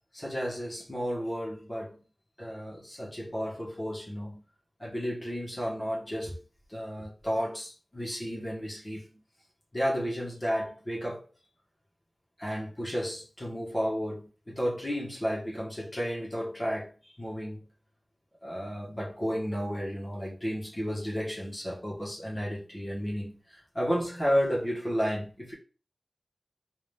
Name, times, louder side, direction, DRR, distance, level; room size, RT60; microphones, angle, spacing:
voice 1, 0.1-2.0 2.4-4.4 4.8-6.4 6.7-9.2 9.7-11.2 12.4-17.6 18.4-25.5, equal, 30° left, 1.6 m, -32 dB
3.9 x 2.9 x 3.4 m
cardioid pair, 45°, 0 cm